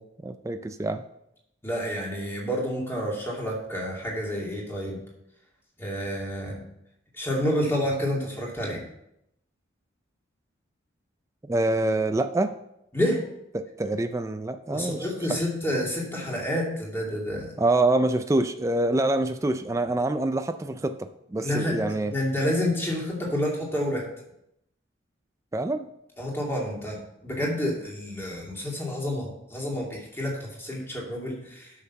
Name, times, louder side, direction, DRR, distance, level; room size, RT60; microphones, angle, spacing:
voice 1, 0.2-1.0 11.4-12.5 13.5-15.5 17.6-22.1 25.5-25.9, right 2 dB, 15° right, 8 dB, 0.3 m, -26 dB
voice 2, 1.6-5.0 5.8-6.6 7.2-8.8 12.9-13.2 14.7-17.5 21.4-24.0 26.2-27.0 27.2-31.7, equal, 10° left, -3 dB, 2.4 m, -29 dB
8.6 x 6.5 x 5.8 m, 0.80 s
head